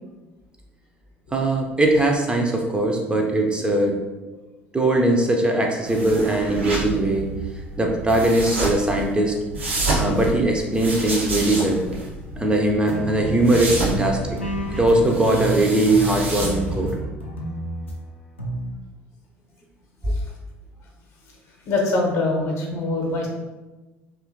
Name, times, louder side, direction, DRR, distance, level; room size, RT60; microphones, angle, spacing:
voice 1, 1.3-4.0 4.7-7.3 7.8-9.4 10.0-11.9 12.4-14.4 14.7-17.0 20.1-20.2, right 1 dB, 15° right, 1 dB, 0.4 m, -20 dB
sound 1, 5.9-16.9, right 2 dB, 80° right, 0.6 m, -29 dB
sound 2, 12.8-17.9 18.4-18.8, right 1 dB, 85° left, 0.4 m, -30 dB
voice 2, 21.7-23.3, left 2 dB, 45° left, 0 dB, 0.7 m, -23 dB
2.7 x 2.4 x 2.5 m, 1.1 s
figure-of-eight pair, 60°, 6 cm